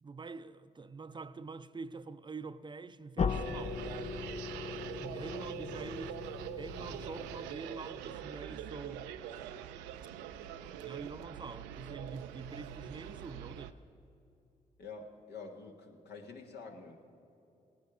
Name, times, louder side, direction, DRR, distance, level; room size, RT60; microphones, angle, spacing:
voice 1, 0.0-3.9 5.0-6.2 6.6-9.1 10.8-13.8, right 4 dB, 25° right, 0.5 m, -45 dB
sound 1, 3.2-8.0, left 6 dB, 40° left, 0.5 m, -39 dB
sound 2, 3.3-13.7, right 10 dB, 85° right, 0.4 m, -44 dB
voice 2, 14.8-17.0, left 4 dB, 70° left, 1.4 m, -48 dB
18.0 x 9.5 x 4.9 m
hypercardioid pair, 45°, 18 cm